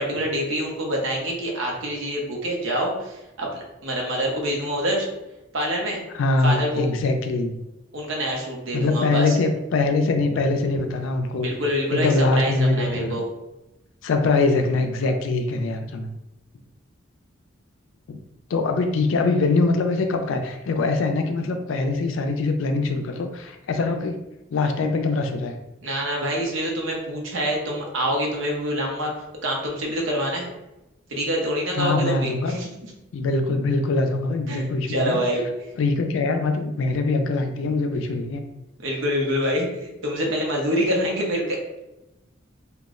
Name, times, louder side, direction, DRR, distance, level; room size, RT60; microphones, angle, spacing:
voice 1, 0.0-5.1 5.5-6.0 6.4-6.9 7.9-9.4 11.4-13.3 25.8-29.1 29.4-30.5 31.1-32.9 34.5-35.4 38.8-41.8, equal, 80° right, -1 dB, 0.8 m, -26 dB
voice 2, 6.1-7.5 8.7-11.5 11.9-13.2 14.0-16.1 18.1-18.2 18.5-24.2 24.5-25.5 31.8-32.6 33.1-35.2 35.8-38.4, left 3 dB, 75° left, 6 dB, 0.4 m, -23 dB
2.3 x 2.0 x 3.6 m, 0.97 s
head